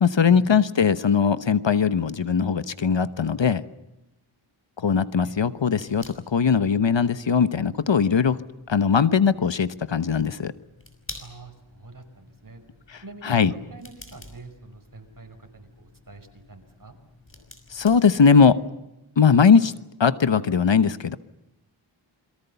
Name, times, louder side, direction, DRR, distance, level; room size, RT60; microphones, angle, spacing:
voice 1, 0.0-3.6 4.8-8.4 8.7-10.5 12.9-13.5 17.7-18.6 19.2-19.7 20.0-21.2, left 6 dB, 65° left, 14 dB, 1.1 m, -20 dB
sound 1, 5.2-18.7, left 2 dB, 25° left, 5.7 m, -49 dB
voice 2, 11.2-12.6 13.0-16.9, right 2 dB, 45° right, 6 dB, 5.4 m, -44 dB
29.0 x 22.5 x 7.0 m, 0.93 s
wide cardioid pair, 70°, 47 cm